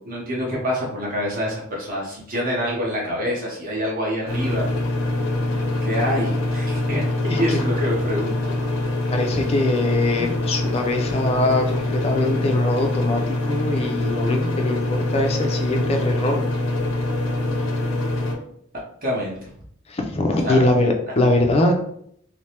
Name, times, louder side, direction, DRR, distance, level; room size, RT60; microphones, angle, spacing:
voice 1, 0.0-4.7 5.8-8.4 19.0-19.5 20.4-20.6, equal, 45° right, -4 dB, 0.8 m, -26 dB
sound 1, 4.3-18.4, left 1 dB, 70° left, 0.7 m, -24 dB
voice 2, 7.3-7.6 9.1-16.4 19.9-21.8, left 2 dB, 30° left, 3 dB, 0.4 m, -22 dB
3.2 x 2.1 x 2.8 m, 0.67 s
head